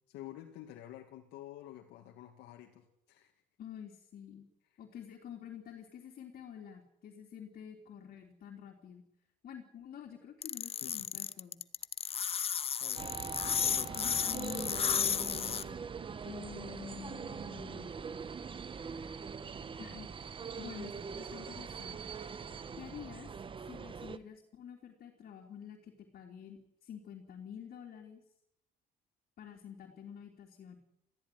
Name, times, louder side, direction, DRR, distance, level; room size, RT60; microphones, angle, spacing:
voice 1, 0.0-3.3 10.8-10.9 12.8-13.3 13.6-14.0, left 13 dB, 85° left, 2 dB, 2.2 m, -50 dB
voice 2, 3.6-4.5 4.8-9.0 9.4-11.6 14.0-15.9 16.2-17.9 19.8-22.2 22.8-23.3 23.6-28.2 29.4-30.7, left 8 dB, 60° left, 0 dB, 3.5 m, -48 dB
sound 1, 10.4-15.6, left 8 dB, 35° left, 0.7 m, -33 dB
sound 2, 13.0-24.2, right 6 dB, 30° right, 1.0 m, -42 dB
20.0 x 15.0 x 9.4 m, 0.81 s
cardioid pair, 110°, 17 cm